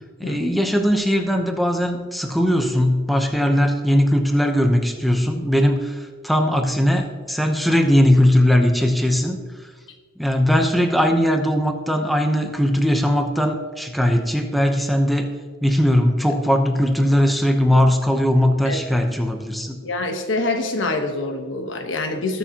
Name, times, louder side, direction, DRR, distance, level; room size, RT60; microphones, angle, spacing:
voice 1, 0.2-9.4 10.2-15.3 15.6-19.8, equal, ahead, 3 dB, 0.8 m, -19 dB
voice 2, 19.8-22.4, left 2 dB, 75° left, 5 dB, 1.2 m, -25 dB
20.5 x 6.9 x 2.9 m, 1.5 s
head